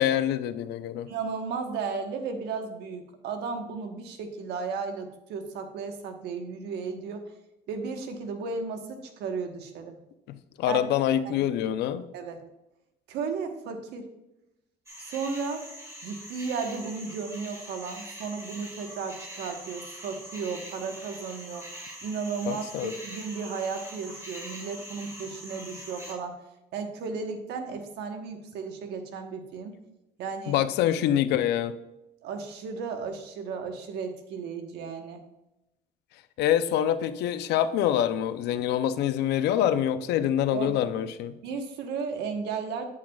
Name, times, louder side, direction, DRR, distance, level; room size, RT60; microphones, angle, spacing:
voice 1, 0.0-1.1 10.3-12.1 22.5-22.9 30.5-31.7 36.4-41.3, left 10 dB, 80° left, 12 dB, 0.6 m, -25 dB
voice 2, 1.1-7.2 7.7-10.0 10.7-10.8 11.2-11.5 12.1-12.4 13.1-14.1 15.0-15.6 16.0-21.7 22.0-26.4 26.7-29.8 30.2-30.6 32.2-35.2 40.5-40.8 41.4-42.8, right 5 dB, 85° right, 5 dB, 1.2 m, -34 dB
sound 1, 14.9-26.1, equal, 15° right, 2.3 m, -43 dB
8.6 x 8.3 x 2.3 m, 0.92 s
cardioid pair, 110°, 17 cm